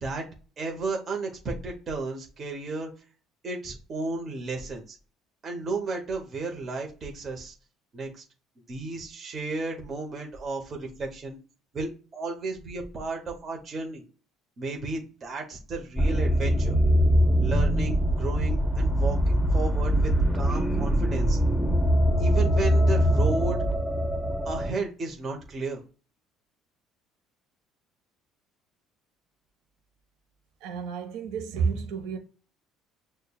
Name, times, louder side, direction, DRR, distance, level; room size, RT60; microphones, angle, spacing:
voice 1, 0.6-2.9 3.4-5.0 5.4-7.5 7.9-8.2 8.7-11.4 11.7-14.0 14.6-16.8 17.4-21.4 22.2-23.6 24.4-25.8, right 3 dB, 40° right, 0.9 m, -33 dB
sound 1, 16.0-24.7, equal, ahead, 0.9 m, -23 dB
voice 2, 30.6-32.2, right 5 dB, 80° right, 0.7 m, -30 dB
6.4 x 2.2 x 2.3 m
supercardioid pair, 95°, 0 cm